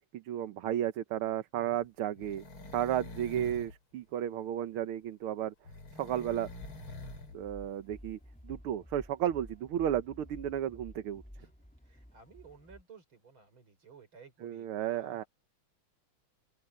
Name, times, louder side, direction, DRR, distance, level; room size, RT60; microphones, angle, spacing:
voice 1, 0.1-2.4 2.7-5.5 6.0-6.5 7.3-8.2 8.4-11.2 14.4-15.2, right 11 dB, 85° right, 1.9 m, -33 dB
sound 1, 1.8-3.8 5.6-7.4 7.6-7.7, left 2 dB, 75° left, 5.1 m, -46 dB
sound 2, 6.2-12.8, equal, 5° left, 3.0 m, -52 dB
voice 2, 11.8-15.3, right 4 dB, 70° right, 5.9 m, -55 dB
open air
omnidirectional pair, 2.3 m